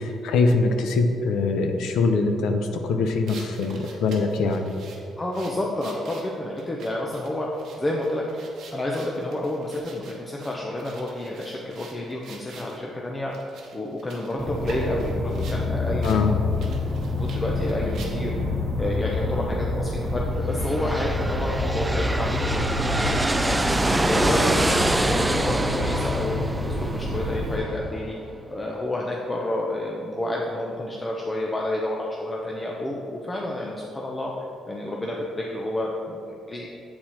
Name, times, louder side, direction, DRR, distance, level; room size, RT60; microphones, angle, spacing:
voice 1, 0.0-4.7 16.0-16.3, left 3 dB, 80° left, 5 dB, 0.6 m, -23 dB
sound 1, 3.3-12.8 13.3-15.6 16.0-16.2 16.5-18.4, right 4 dB, 70° right, 1.1 m, -46 dB
voice 2, 5.2-7.5 7.8-8.5 8.7-13.4 13.7-16.5 17.2-18.3 18.8-26.4 26.6-28.2 28.5-34.3 34.7-36.7, left 1 dB, 20° left, -2 dB, 0.7 m, -30 dB
sound 2, 14.4-27.6, left 2 dB, 30° right, 1.1 m, -27 dB
sound 3, 20.5-28.2, right 1 dB, 10° right, 0.3 m, -26 dB
7.7 x 4.3 x 4.4 m, 2.7 s
cardioid pair, 90°, 0 cm